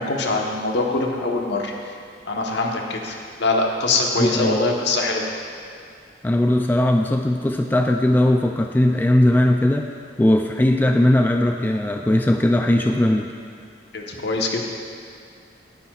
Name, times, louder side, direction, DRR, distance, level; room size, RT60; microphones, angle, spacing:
voice 1, 0.0-1.7 2.3-5.2 13.9-14.6, left 2 dB, 65° left, 0 dB, 1.2 m, -23 dB
voice 2, 4.2-4.6 6.2-9.9 10.2-13.3, left 1 dB, 10° left, 3 dB, 0.3 m, -18 dB
17.0 x 9.5 x 2.4 m, 2.4 s
head